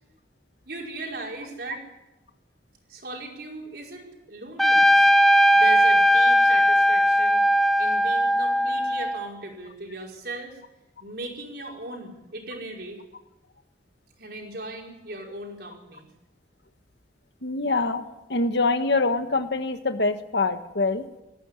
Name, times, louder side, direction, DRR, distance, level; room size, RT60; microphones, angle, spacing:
voice 1, 0.7-1.9 2.9-5.1 5.5-7.5 7.8-10.6 11.0-13.0 14.2-16.1, right 2 dB, 55° right, 0 dB, 5.3 m, -38 dB
Trumpet, 4.6-9.3, equal, ahead, 0.6 m, -19 dB
voice 2, 17.4-18.0 18.3-21.0, left 3 dB, 70° left, 8 dB, 1.5 m, -24 dB
19.0 x 15.0 x 9.9 m, 0.97 s
head